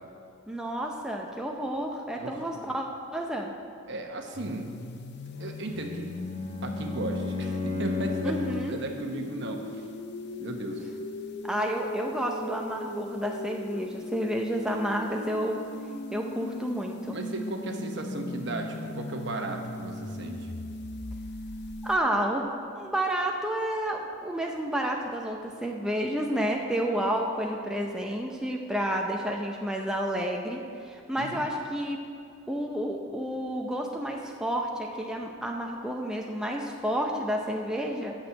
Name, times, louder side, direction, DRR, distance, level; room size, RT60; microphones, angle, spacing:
voice 1, 0.5-2.9 3.1-3.5 8.2-8.8 11.4-15.6 16.1-17.2 21.8-22.5 22.7-32.0 32.5-38.2, right 1 dB, 5° right, 0 dB, 0.5 m, -30 dB
voice 2, 2.1-2.6 3.9-4.7 5.4-6.2 6.6-9.9 10.4-10.8 17.1-20.5 31.2-31.5, right 2 dB, 55° right, 3 dB, 1.0 m, -36 dB
sound 1, 4.3-22.0, left 1 dB, 55° left, 0.6 m, -38 dB
Bowed string instrument, 5.7-8.9, left 3 dB, 30° left, 1.3 m, -33 dB
8.6 x 6.2 x 7.6 m, 2.5 s
head